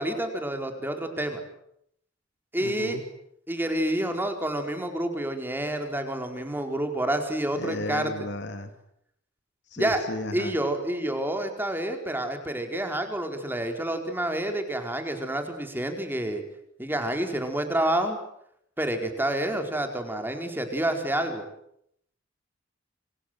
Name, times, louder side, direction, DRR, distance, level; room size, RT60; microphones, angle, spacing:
voice 1, 0.0-1.4 2.5-3.0 3.5-8.3 9.8-10.0 10.3-16.4 16.8-18.2 18.8-21.4, right 1 dB, 10° right, 5 dB, 4.6 m, -28 dB
voice 2, 2.6-3.0 7.5-8.7 9.7-10.5, left 1 dB, 60° left, 8 dB, 2.6 m, -34 dB
27.5 x 26.0 x 7.9 m, 0.74 s
head